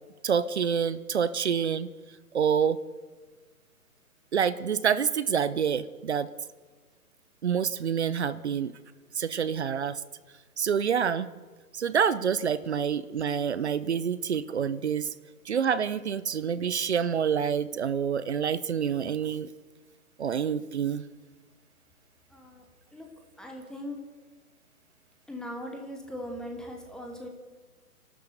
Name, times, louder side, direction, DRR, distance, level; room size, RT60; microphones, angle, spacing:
voice 1, 0.2-1.9 2.3-2.8 4.3-6.3 7.4-8.7 9.1-10.0 10.6-11.3 11.7-15.1 15.4-19.5 20.2-21.0, right 7 dB, 45° right, 16 dB, 0.9 m, -27 dB
voice 2, 22.3-22.6 22.9-23.1 23.4-24.0 25.3-27.3, equal, ahead, 1 dB, 0.8 m, -39 dB
28.0 x 12.5 x 8.0 m, 1.4 s
figure-of-eight pair, 140°, 46 cm